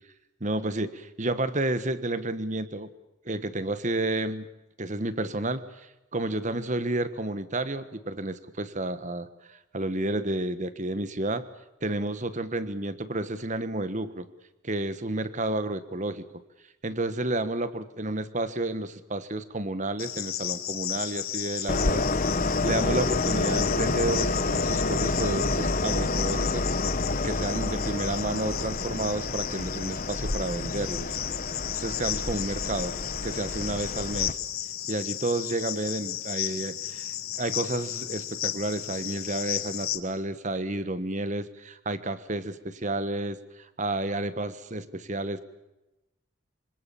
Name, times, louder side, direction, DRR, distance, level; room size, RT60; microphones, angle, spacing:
voice 1, 0.4-2.9 3.2-4.5 4.8-5.9 6.1-11.4 11.8-14.3 14.6-16.2 16.8-22.1 22.6-26.7 27.1-31.1 31.8-34.4 34.9-37.1 37.4-43.4 43.8-45.4, right 2 dB, 35° right, 12 dB, 1.4 m, -31 dB
Cricket, 20.0-40.0, left 11 dB, 85° left, 2.1 m, -34 dB
Train, 21.7-34.3, left 2 dB, 40° left, 1.0 m, -29 dB
25.5 x 25.5 x 7.2 m, 0.96 s
head